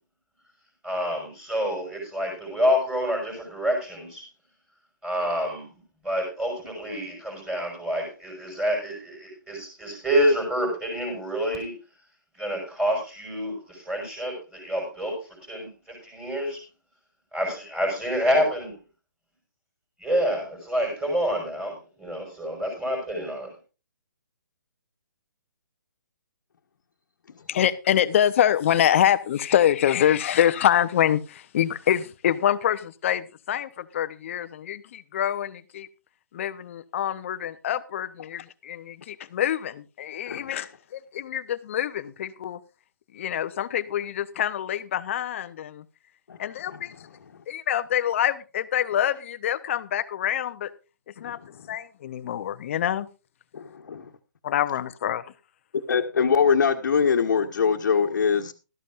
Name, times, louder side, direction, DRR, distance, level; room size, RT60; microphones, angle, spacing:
voice 1, 0.8-4.3 5.0-5.7 6.0-11.7 12.4-15.6 16.0-16.6 17.3-18.7 20.0-23.5, equal, 5° right, 1 dB, 5.5 m, -27 dB
voice 2, 27.5-35.9 36.3-42.6 43.1-45.8 46.4-46.9 47.5-50.7 51.2-51.4 51.7-53.1 54.4-55.2, left 10 dB, 40° left, 13 dB, 0.8 m, -25 dB
voice 3, 51.2-51.7 53.5-54.1 55.9-58.5, left 6 dB, 65° left, -1 dB, 1.4 m, -23 dB
16.5 x 13.5 x 2.5 m, 0.31 s
hypercardioid pair, 155°, 11 cm